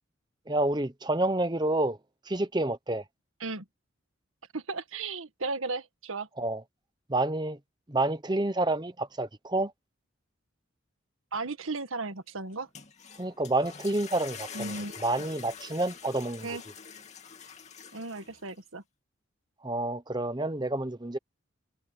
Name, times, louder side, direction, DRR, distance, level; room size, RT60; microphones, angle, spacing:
voice 1, 0.5-2.0 2.3-3.0 6.4-6.6 7.1-7.6 7.9-9.7 13.2-14.7 15.0-16.6 19.6-21.2, right 2 dB, 20° right, 1.0 m, -29 dB
voice 2, 4.5-6.3 11.3-12.7 14.5-15.0 16.4-16.6 17.9-18.8, right 3 dB, 85° right, 1.6 m, -35 dB
sound 1, 12.5-18.6, left 6 dB, 35° left, 2.7 m, -46 dB
head